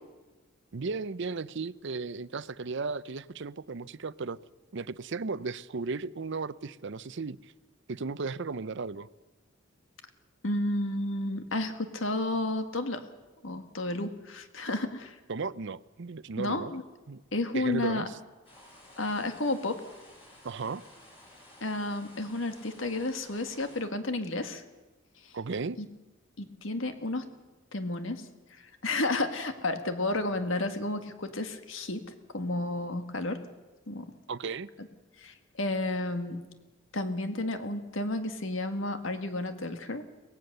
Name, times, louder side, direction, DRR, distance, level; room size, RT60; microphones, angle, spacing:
voice 1, 0.7-4.4 4.7-7.5 7.9-9.1 15.3-16.7 17.1-17.2 17.5-18.1 20.4-20.8 25.3-25.8 34.3-34.7, right 4 dB, 60° right, 17 dB, 0.6 m, -35 dB
voice 2, 10.4-13.0 13.4-15.2 16.4-16.8 17.3-18.1 19.0-19.8 21.6-24.6 25.2-25.4 25.8-25.9 26.4-27.3 27.7-32.0 32.3-33.4 33.9-34.1 35.2-36.4 36.9-40.0, left 2 dB, 65° left, 8 dB, 1.8 m, -32 dB
sound 1, 18.4-23.8, left 1 dB, 30° left, 7.4 m, -54 dB
23.5 x 19.0 x 6.7 m, 1.2 s
head